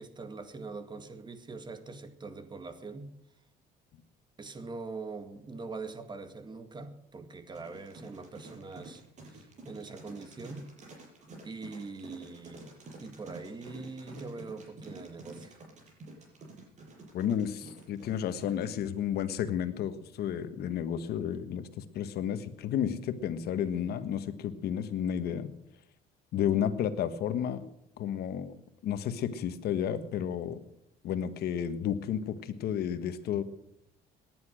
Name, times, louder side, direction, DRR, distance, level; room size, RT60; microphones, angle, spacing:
voice 1, 0.0-3.1 4.4-10.7 11.4-12.7 13.0-15.6, right 3 dB, 25° right, 1.9 m, -43 dB
sound 1, 7.5-19.0, right 2 dB, 45° right, 6.8 m, -49 dB
voice 2, 17.1-25.5 26.3-27.6 28.0-28.6 28.8-30.6 31.0-33.4, left 9 dB, 70° left, 1.4 m, -32 dB
18.0 x 11.0 x 6.3 m
cardioid pair, 110°, 17 cm